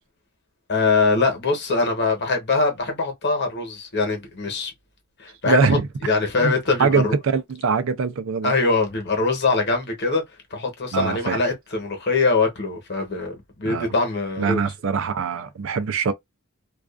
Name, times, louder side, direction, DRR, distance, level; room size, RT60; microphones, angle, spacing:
voice 1, 0.7-4.7 5.2-5.8 6.0-7.1 8.4-10.2 10.5-14.6, left 3 dB, 50° left, 1.0 m, -22 dB
voice 2, 5.4-5.9 6.4-6.5 6.8-8.6 10.9-11.4 13.6-13.9 14.4-16.1, right 5 dB, 65° right, 0.4 m, -23 dB
2.4 x 2.3 x 2.4 m
head